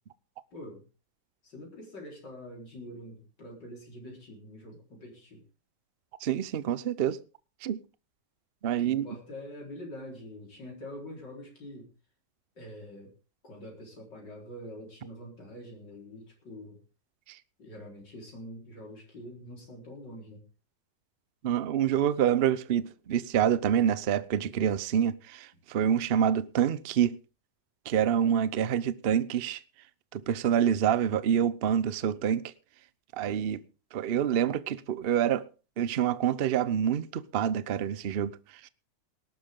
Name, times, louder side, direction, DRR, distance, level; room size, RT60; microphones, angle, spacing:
voice 1, 0.5-0.8 1.4-5.4 8.8-11.9 12.6-13.1 13.4-16.8 17.6-20.4, left 1 dB, 70° left, 5.1 m, -45 dB
voice 2, 6.2-7.2 7.6-7.8 8.6-9.1 21.4-27.2 27.9-29.6 30.1-32.4 33.2-33.6 33.9-35.4 35.8-38.3 38.6-38.7, right 9 dB, 55° right, 0.6 m, -27 dB
19.0 x 12.0 x 3.8 m
omnidirectional pair, 1.9 m